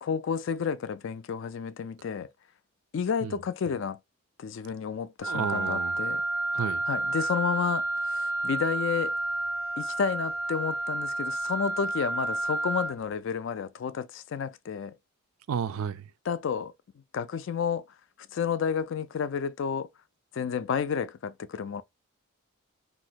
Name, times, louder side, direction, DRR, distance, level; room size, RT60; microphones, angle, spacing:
voice 1, 0.0-2.3 2.9-4.0 4.4-6.2 6.9-9.1 9.8-15.0 16.3-16.7 17.1-17.8 18.3-19.9 20.3-21.8, left 6 dB, 55° left, 0.3 m, -31 dB
Wind instrument woodwind instrument, 5.2-13.0, right 2 dB, 10° right, 0.5 m, -30 dB
voice 2, 5.3-6.0 6.5-6.8 15.5-16.1, right 7 dB, 75° right, 0.3 m, -32 dB
2.6 x 2.1 x 3.9 m
head